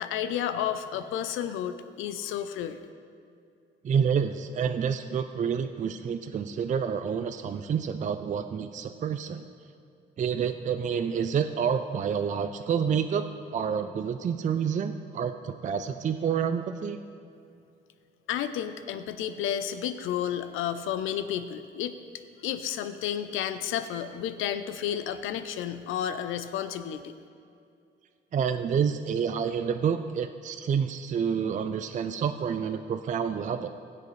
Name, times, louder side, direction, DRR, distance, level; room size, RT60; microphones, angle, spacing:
voice 1, 0.0-2.8 18.3-21.9 22.4-27.0, left 10 dB, 90° left, 11 dB, 0.6 m, -31 dB
voice 2, 3.8-9.4 10.2-13.3 13.5-17.0 28.3-33.7, right 7 dB, 40° right, 8 dB, 0.4 m, -28 dB
16.5 x 7.5 x 3.2 m, 2.5 s
cardioid pair, 90°, 20 cm